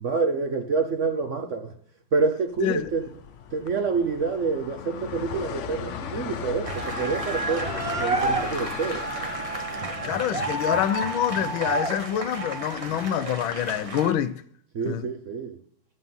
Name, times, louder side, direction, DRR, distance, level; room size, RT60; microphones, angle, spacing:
voice 1, 0.0-1.7 2.1-3.1 3.5-9.1 14.7-15.6, right 4 dB, 55° right, 0.9 m, -27 dB
sound 1, 2.6-14.0, left 7 dB, 60° left, 0.7 m, -38 dB
sound 2, 6.6-14.1, right 2 dB, 25° right, 0.7 m, -30 dB
voice 2, 10.0-14.4 14.9-15.1, left 10 dB, 90° left, 1.5 m, -26 dB
11.5 x 7.6 x 5.4 m
omnidirectional pair, 2.1 m